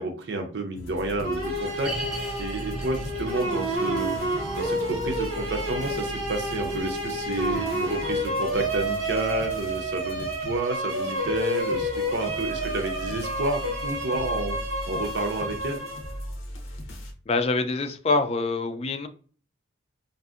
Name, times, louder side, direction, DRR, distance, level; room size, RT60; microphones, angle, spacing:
voice 1, 0.0-1.9 2.4-14.5 14.8-15.8, right 2 dB, 60° right, 3 dB, 0.5 m, -30 dB
sound 1, 0.8-17.1, left 1 dB, 90° left, 0.7 m, -40 dB
sound 2, 1.2-16.3, right 1 dB, 90° right, 0.9 m, -30 dB
sound 3, 1.8-13.1 13.4-13.5 14.1-14.2, right 1 dB, ahead, 0.8 m, -42 dB
voice 2, 17.3-19.1, left 3 dB, 30° left, 8 dB, 0.3 m, -25 dB
2.6 x 2.6 x 2.4 m, 0.41 s
head